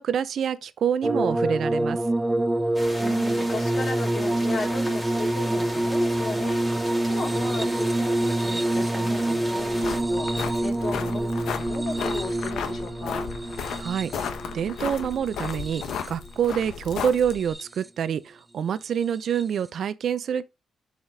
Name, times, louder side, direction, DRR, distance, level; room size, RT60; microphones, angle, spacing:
voice 1, 0.0-2.0 13.8-20.5, right 8 dB, 65° right, 0.5 m, -27 dB
sound 1, 1.0-16.3 17.1-17.9 19.3-19.4, right 1 dB, 15° right, 0.4 m, -26 dB
sound 2, 2.7-10.0, equal, 5° left, 2.6 m, -37 dB
voice 2, 3.0-13.3, left 4 dB, 50° left, 3.7 m, -36 dB
sound 3, 9.6-17.5, left 7 dB, 80° left, 0.8 m, -34 dB
7.2 x 4.9 x 2.7 m
cardioid pair, 95°, 0 cm